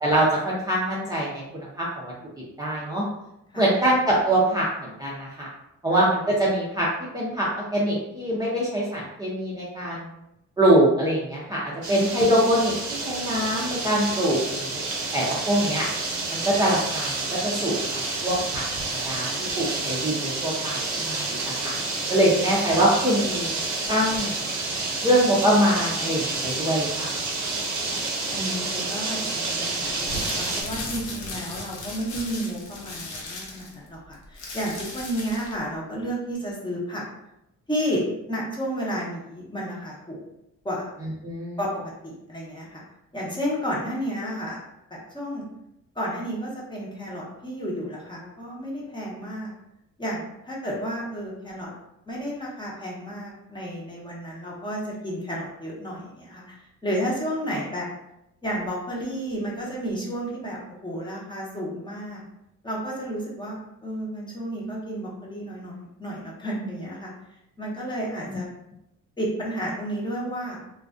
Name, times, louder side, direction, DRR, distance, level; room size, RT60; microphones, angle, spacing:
voice 1, 0.0-2.1 2.6-3.0 3.6-5.5 5.8-6.9 7.1-10.1 10.6-14.8 15.1-15.9 16.3-21.7 22.1-23.5 23.9-24.4 25.0-27.1 41.2-41.6 68.3-68.4, right 1 dB, 15° right, -6 dB, 0.5 m, -24 dB
sound 1, 11.8-30.6, right 3 dB, 70° right, 0.7 m, -29 dB
voice 2, 27.9-37.0 37.7-40.2 40.6-40.9 41.6-41.7 42.0-42.8 43.1-44.6 44.9-45.4 46.0-49.5 50.0-51.7 52.1-56.6 56.8-57.9 58.4-62.2 62.6-67.1 67.6-68.5 69.2-70.6, equal, 15° left, -4 dB, 0.8 m, -32 dB
sound 2, 30.0-35.6, left 2 dB, 75° left, 0.7 m, -36 dB
2.4 x 2.2 x 2.4 m, 0.84 s
cardioid pair, 90°, 30 cm